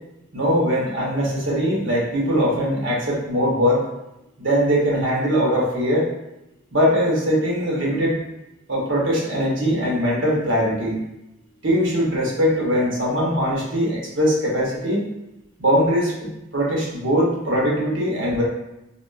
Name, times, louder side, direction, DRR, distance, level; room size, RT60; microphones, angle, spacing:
voice 1, 0.3-3.8 4.4-6.0 6.7-8.2 8.7-11.0 11.6-15.1 15.6-18.4, equal, 75° right, -4 dB, 1.0 m, -21 dB
3.5 x 2.3 x 2.4 m, 0.92 s
head